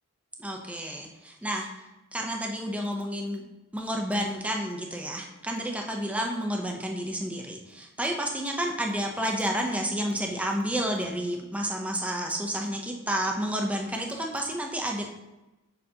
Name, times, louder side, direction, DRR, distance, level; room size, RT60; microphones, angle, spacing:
voice 1, 0.4-1.7 2.1-3.4 3.7-15.1, equal, 5° right, 1 dB, 0.7 m, -30 dB
6.9 x 6.6 x 2.8 m, 1.0 s
head